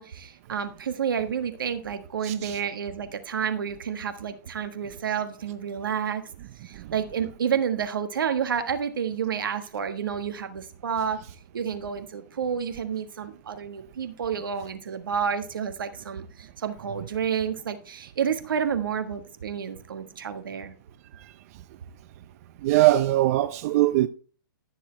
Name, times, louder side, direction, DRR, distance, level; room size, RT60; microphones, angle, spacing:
voice 1, 0.0-6.2 6.6-11.2 11.5-20.7, right 7 dB, 75° right, 1.5 m, -30 dB
voice 2, 2.2-2.6 22.6-24.1, right 16 dB, 45° right, 0.6 m, -21 dB
14.5 x 6.9 x 3.3 m
hypercardioid pair, 130°, 11 cm